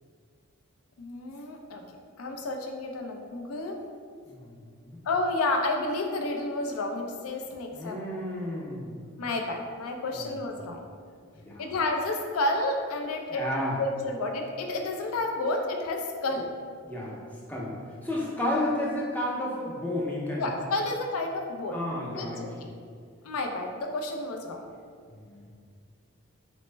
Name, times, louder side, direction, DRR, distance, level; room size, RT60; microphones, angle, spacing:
voice 1, 1.0-1.8 2.2-3.8 5.0-8.2 9.2-10.8 11.6-16.5 20.4-21.8 22.1-22.7 23.2-24.6, left 2 dB, 85° left, 3 dB, 0.4 m, -31 dB
voice 2, 4.3-5.0 7.7-9.0 10.2-10.3 11.4-11.7 13.3-13.8 16.8-17.2 17.5-17.7 18.0-20.5 21.7-22.6 25.1-25.4, left 1 dB, 5° left, -5 dB, 0.5 m, -32 dB
4.1 x 2.0 x 3.2 m, 2.1 s
head